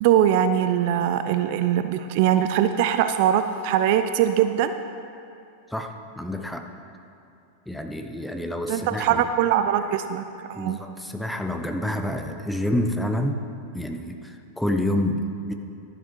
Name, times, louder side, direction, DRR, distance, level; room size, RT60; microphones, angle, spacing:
voice 1, 0.0-4.7 8.7-10.2 10.5-10.8, right 10 dB, 50° right, 10 dB, 0.4 m, -21 dB
voice 2, 5.7-6.7 7.7-9.3 10.5-13.4 13.7-15.5, left 1 dB, 5° left, 5 dB, 0.7 m, -28 dB
11.5 x 7.2 x 5.0 m, 2.6 s
figure-of-eight pair, 90°, 0 cm